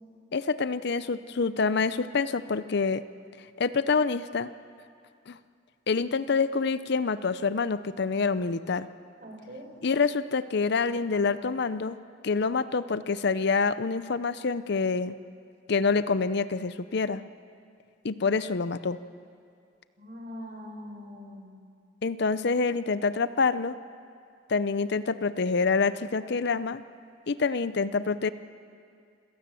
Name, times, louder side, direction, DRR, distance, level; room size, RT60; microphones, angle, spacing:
voice 1, 0.3-3.0 3.6-4.5 5.3-5.4 5.9-8.9 9.8-12.0 12.2-15.2 15.7-17.2 18.0-19.0 22.0-23.7 24.5-26.8 27.3-28.3, left 4 dB, 60° left, 14 dB, 0.6 m, -26 dB
voice 2, 9.2-9.7 20.0-21.5, equal, 45° right, 2 dB, 4.2 m, -42 dB
27.0 x 17.0 x 7.6 m, 2.3 s
head